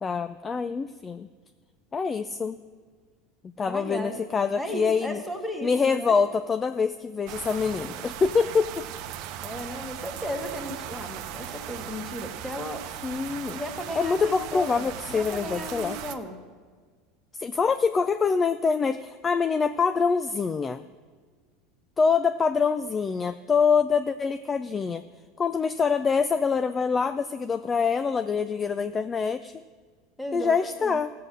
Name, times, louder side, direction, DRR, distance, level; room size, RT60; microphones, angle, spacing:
voice 1, 0.0-1.3 1.9-2.6 3.6-5.2 5.6-8.8 13.0-13.6 14.0-16.0 17.4-20.8 22.0-25.0 25.4-29.6 30.3-31.1, left 5 dB, 20° left, 11 dB, 0.4 m, -25 dB
voice 2, 3.6-4.2 4.6-6.2 9.4-12.9 13.5-16.4 30.2-30.6 30.8-31.0, equal, 5° left, 4 dB, 1.7 m, -35 dB
sound 1, 7.3-16.1, right 10 dB, 60° right, 0.8 m, -38 dB
15.0 x 7.6 x 6.4 m, 1.6 s
supercardioid pair, 120°, 0 cm